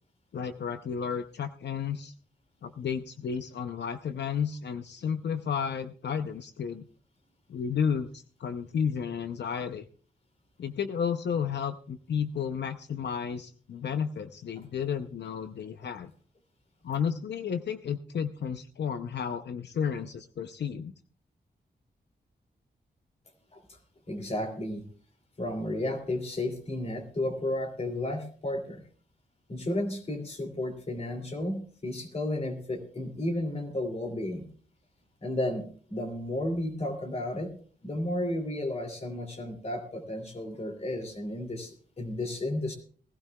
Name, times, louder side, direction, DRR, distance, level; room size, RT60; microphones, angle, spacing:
voice 1, 0.3-2.1 2.6-6.9 7.5-9.8 10.6-16.1 16.8-20.9, left 7 dB, 80° left, 9 dB, 0.6 m, -32 dB
voice 2, 24.1-24.8 25.4-28.8 29.5-34.5 35.2-37.5 37.8-42.8, left 1 dB, 35° left, 4 dB, 2.7 m, -33 dB
19.5 x 15.5 x 2.3 m, 0.43 s
wide cardioid pair, 160°, 18 cm